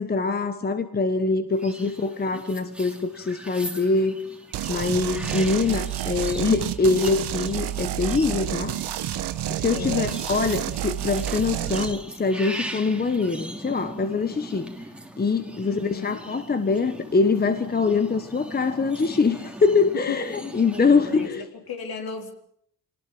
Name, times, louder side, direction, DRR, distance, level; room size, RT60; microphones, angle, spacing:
voice 1, 0.0-4.2 4.7-8.8 9.5-14.7 15.2-21.5, left 4 dB, 25° left, 9 dB, 1.3 m, -24 dB
sound 1, 1.5-21.3, right 1 dB, 5° right, 2.6 m, -40 dB
voice 2, 1.8-2.4 9.7-10.2 15.6-16.2 19.9-20.2 20.7-22.3, left 6 dB, 60° left, 5 dB, 4.0 m, -35 dB
sound 2, 4.5-11.9, right 12 dB, 80° right, 1.4 m, -29 dB
25.0 x 19.0 x 7.6 m, 0.67 s
cardioid pair, 125°, 40 cm